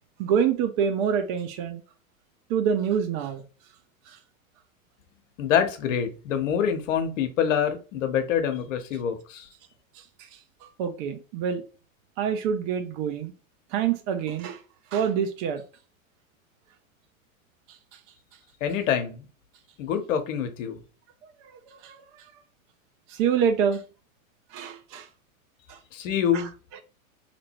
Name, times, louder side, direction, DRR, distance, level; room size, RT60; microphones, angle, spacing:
voice 1, 0.2-1.8 2.5-3.4 10.8-11.6 12.2-13.3 13.7-14.6 14.9-15.6 21.8-22.0 23.1-23.8 24.5-25.1 25.7-25.8 26.3-26.4, right 7 dB, 40° right, 0.7 m, -26 dB
voice 2, 5.4-9.5 18.6-19.3 19.8-20.8 25.9-26.5, left 8 dB, 65° left, 1.0 m, -26 dB
2.9 x 2.6 x 4.2 m
hypercardioid pair, 115°, 41 cm